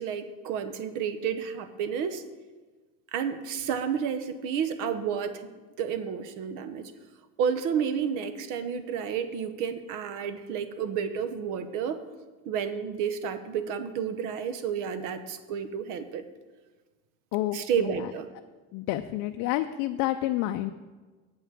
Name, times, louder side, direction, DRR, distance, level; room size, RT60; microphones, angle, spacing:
voice 1, 0.0-2.2 3.1-5.5 5.8-6.9 7.4-12.0 12.4-16.2 17.5-18.3, right 7 dB, 70° right, 11 dB, 0.9 m, -31 dB
voice 2, 17.3-18.1 18.7-20.7, left 14 dB, 65° left, 7 dB, 0.5 m, -29 dB
8.0 x 5.7 x 7.4 m, 1.3 s
cardioid pair, 145°, 33 cm